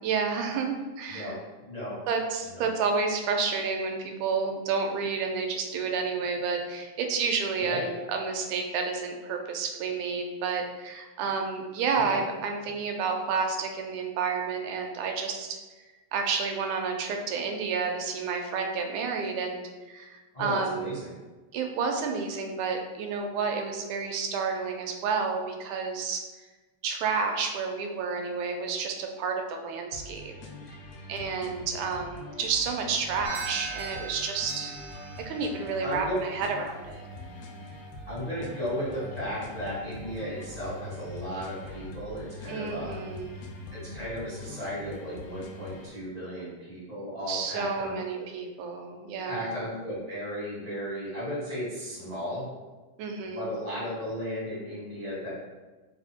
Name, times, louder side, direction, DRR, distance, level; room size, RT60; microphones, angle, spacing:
voice 1, 0.0-1.4 2.1-15.6 16.1-21.0 21.5-26.2 26.8-30.3 31.1-34.7 35.3-37.0 42.5-43.5 47.3-49.5 53.0-53.6, right 5 dB, 85° right, 3 dB, 2.0 m, -30 dB
voice 2, 1.6-2.0 2.5-2.7 7.6-7.9 11.9-12.2 20.3-21.1 35.8-36.1 38.1-43.0 43.7-48.2 49.2-52.5 53.3-55.3, equal, 55° left, -10 dB, 0.4 m, -35 dB
sound 1, 29.9-45.9, left 2 dB, 80° left, 1.7 m, -43 dB
sound 2, 33.2-41.6, right 5 dB, 65° right, 0.8 m, -44 dB
4.6 x 2.1 x 4.3 m, 1.2 s
omnidirectional pair, 3.3 m